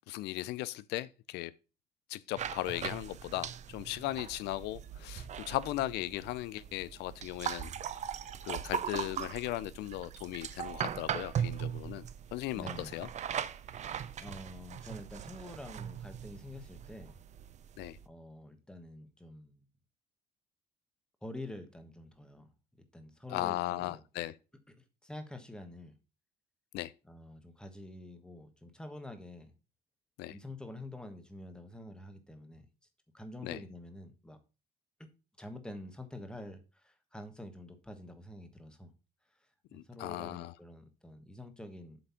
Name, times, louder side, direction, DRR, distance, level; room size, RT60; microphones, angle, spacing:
voice 1, 0.1-1.5 2.1-7.7 8.5-12.1 12.3-13.1 17.8-18.0 23.3-24.3 26.7-26.9 30.2-30.4 33.4-33.6 39.7-40.5, left 16 dB, 85° left, 0.4 m, -37 dB
sound 1, 2.4-18.0, right 9 dB, 45° right, 0.6 m, -40 dB
voice 2, 12.5-13.0 14.2-17.1 18.0-19.6 21.2-22.5 22.9-24.0 25.0-26.0 27.1-29.5 30.3-32.7 33.1-34.4 35.4-38.9 39.9-42.0, left 1 dB, 5° left, 1.3 m, -47 dB
7.9 x 3.4 x 5.6 m
cardioid pair, 110°, 17 cm